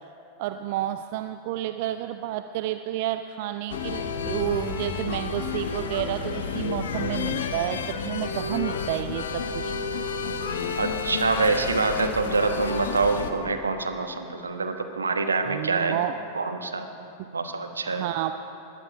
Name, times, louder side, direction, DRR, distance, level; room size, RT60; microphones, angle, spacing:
voice 1, 0.4-9.8 15.5-16.2 17.2-17.3 17.9-18.3, right 13 dB, 50° right, 9 dB, 0.4 m, -30 dB
sound 1, 3.7-13.3, left 5 dB, 60° left, 1.0 m, -31 dB
voice 2, 10.8-16.0 16.3-16.9 17.3-18.1, right 3 dB, 75° right, 6 dB, 1.2 m, -26 dB
20.5 x 11.5 x 4.8 m, 3.0 s
figure-of-eight pair, 90°, 0 cm